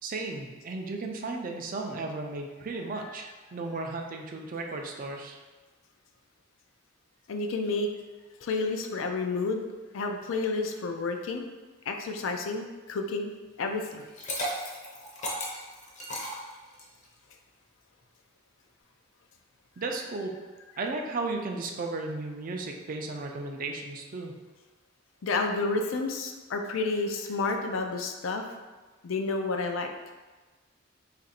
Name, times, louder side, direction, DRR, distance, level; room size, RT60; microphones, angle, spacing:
voice 1, 0.0-5.4 19.8-20.3 20.8-24.4, right 3 dB, 45° right, 2 dB, 0.4 m, -35 dB
voice 2, 7.3-7.9 8.4-9.6 9.9-11.4 11.9-13.3 13.6-14.0 25.2-28.6 29.0-29.9, left 3 dB, 75° left, 4 dB, 0.4 m, -30 dB
Liquid, 14.0-17.0, equal, 35° left, 0.7 m, -35 dB
2.9 x 2.5 x 4.2 m, 1.3 s
head